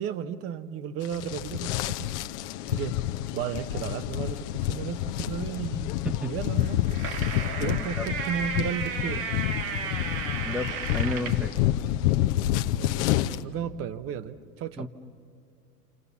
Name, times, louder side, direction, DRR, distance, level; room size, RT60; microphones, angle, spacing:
voice 1, 0.0-2.1 2.7-3.0 3.3-5.9 6.2-7.0 7.6-9.2 12.8-13.1 13.4-14.9, right 8 dB, 30° right, 13 dB, 0.8 m, -34 dB
sound 1, 1.0-13.4, left 14 dB, 45° left, 0.8 m, -28 dB
sound 2, 6.6-11.5, right 6 dB, 50° right, 1.7 m, -34 dB
voice 2, 10.4-11.5 14.8-14.9, left 1 dB, ahead, 6 dB, 1.0 m, -31 dB
29.0 x 27.5 x 7.1 m, 2.3 s
hypercardioid pair, 120°, 47 cm